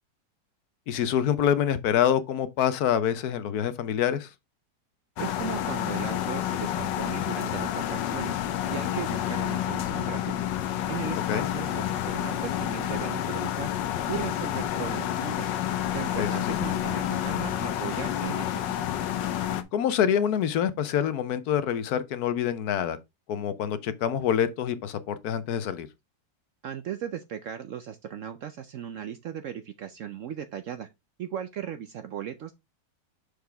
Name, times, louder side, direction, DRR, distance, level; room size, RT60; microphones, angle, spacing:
voice 1, 0.9-4.3 11.3-11.5 16.1-16.6 19.7-23.0 23.3-25.9, left 9 dB, 65° left, 1.2 m, -26 dB
sound 1, 5.2-19.6, left 11 dB, 80° left, 1.4 m, -29 dB
voice 2, 5.2-8.4 8.7-10.3 10.9-13.7 14.1-15.5 15.9-18.6 26.6-30.9 31.2-32.5, right 9 dB, 75° right, 0.7 m, -37 dB
6.5 x 4.8 x 3.4 m
omnidirectional pair, 1.9 m